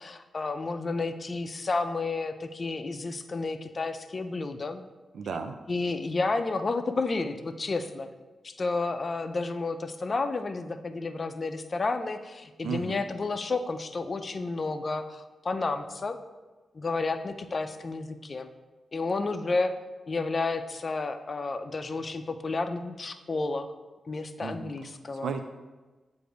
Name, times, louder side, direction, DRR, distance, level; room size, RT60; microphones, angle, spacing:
voice 1, 0.0-4.8 5.7-8.1 8.4-16.2 16.7-18.5 18.9-19.7 20.1-23.7 24.1-25.3, left 3 dB, 45° left, 9 dB, 0.5 m, -31 dB
voice 2, 5.1-5.5 12.6-13.0 24.4-24.7 25.2-25.4, right 5 dB, 80° right, 6 dB, 0.3 m, -33 dB
7.7 x 2.6 x 4.9 m, 1.2 s
cardioid pair, 70°, 0 cm